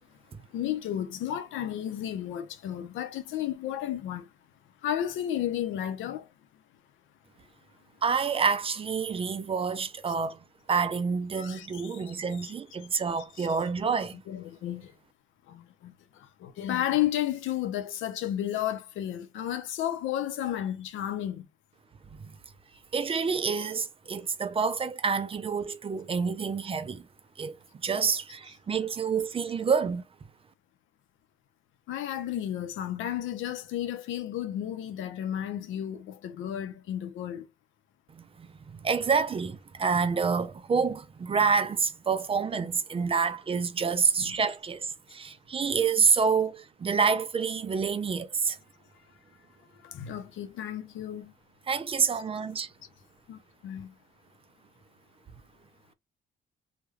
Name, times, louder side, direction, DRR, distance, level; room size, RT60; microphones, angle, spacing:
voice 1, 0.5-4.3 4.8-6.3 11.3-12.5 13.2-13.5 14.3-14.9 15.5-21.5 31.9-37.5 44.2-44.4 49.6-51.3 53.3-53.9, left 11 dB, 85° left, 0.5 m, -33 dB
voice 2, 8.0-10.4 10.7-14.2 22.9-27.1 27.4-27.6 27.8-30.0 38.1-38.5 38.7-48.6 51.7-52.7, right 5 dB, 30° right, 0.3 m, -28 dB
2.3 x 2.1 x 3.1 m
cardioid pair, 90°, 20 cm